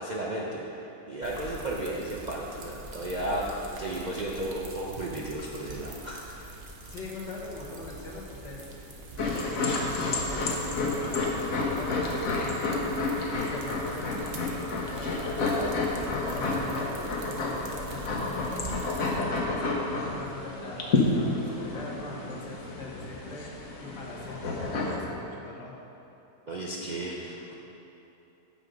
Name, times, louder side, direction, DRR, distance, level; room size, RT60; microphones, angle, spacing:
voice 1, 0.0-3.5 3.8-6.5 26.5-27.5, right 1 dB, 65° right, -4 dB, 0.4 m, -34 dB
sound 1, 1.2-19.2, right 2 dB, 45° right, 0.8 m, -43 dB
voice 2, 6.9-8.7 9.2-13.0 13.4-15.9 16.3-19.7 20.1-23.4 23.8-25.7, left 2 dB, 85° left, -3 dB, 1.9 m, -42 dB
sound 2, 9.2-25.0, left 3 dB, 60° left, 1.3 m, -30 dB
7.8 x 6.2 x 5.1 m, 3.0 s
omnidirectional pair, 1.8 m